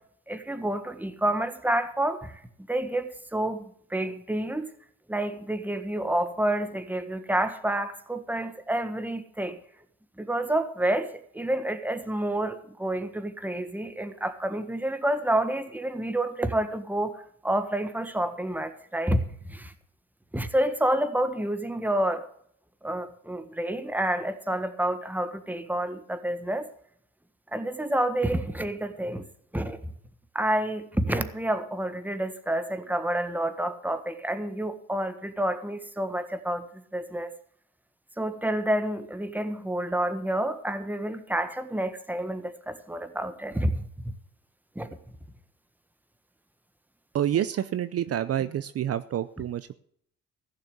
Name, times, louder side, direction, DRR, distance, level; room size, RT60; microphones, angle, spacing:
voice 1, 0.3-2.3 2.7-4.7 5.1-9.6 10.2-17.2 17.4-19.7 20.3-22.3 22.8-26.7 27.5-29.2 29.5-29.8 30.3-36.6 36.9-37.3 38.2-44.1 44.7-44.9, right 1 dB, 5° right, 10 dB, 1.4 m, -29 dB
voice 2, 47.1-49.7, right 11 dB, 50° right, 14 dB, 0.6 m, -28 dB
15.5 x 6.7 x 8.1 m, 0.67 s
cardioid pair, 90°, 30 cm